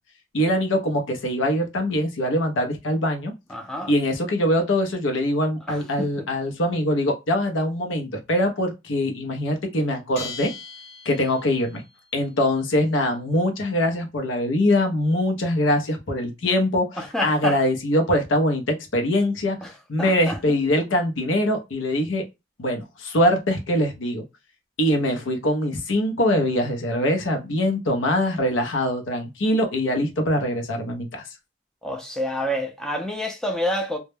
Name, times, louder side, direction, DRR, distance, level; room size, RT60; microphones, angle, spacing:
voice 1, 0.3-3.3 3.9-10.5 11.1-11.8 12.1-19.6 19.9-22.2 22.6-24.2 24.8-31.2, left 1 dB, 80° left, 0.6 m, -23 dB
voice 2, 3.5-3.9 5.7-6.3 17.0-17.6 19.6-19.7 20.0-20.4 31.8-34.0, equal, 5° left, 0.3 m, -28 dB
Bell, 10.1-11.7, left 4 dB, 55° left, 1.1 m, -38 dB
2.1 x 2.0 x 3.1 m
head